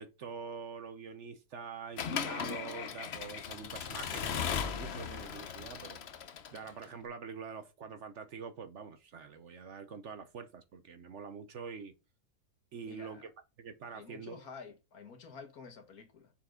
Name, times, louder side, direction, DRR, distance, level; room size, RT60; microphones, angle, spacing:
voice 1, 0.0-6.0 6.5-11.9 12.7-13.3 13.6-14.4, right 5 dB, 55° right, 1.0 m, -45 dB
Accelerating revving vroom / Mechanisms, 2.0-6.9, left 7 dB, 55° left, 0.9 m, -37 dB
voice 2, 12.8-13.3 13.9-16.3, left 5 dB, 70° left, 1.9 m, -50 dB
7.1 x 4.5 x 3.7 m
omnidirectional pair, 1.6 m